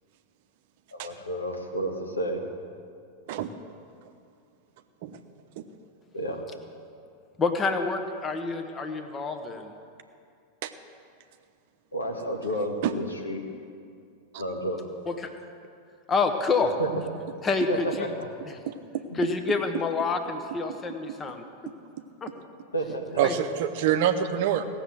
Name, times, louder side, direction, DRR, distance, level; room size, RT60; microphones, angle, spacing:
voice 1, 0.9-2.4 6.1-6.4 11.9-13.4 14.4-14.8 16.8-16.9 17.7-17.9 22.7-23.0, right 1 dB, 75° left, 2 dB, 1.7 m, -31 dB
voice 2, 7.4-9.7 15.1-15.3 16.1-16.7 17.4-18.1 18.5-18.6 19.1-21.4 22.2-22.3 23.2-23.3, left 4 dB, 20° left, 7 dB, 1.2 m, -27 dB
voice 3, 18.7-19.0 23.2-24.7, right 10 dB, 50° right, 8 dB, 0.8 m, -26 dB
17.0 x 7.0 x 7.6 m, 2.4 s
figure-of-eight pair, 90°, 0 cm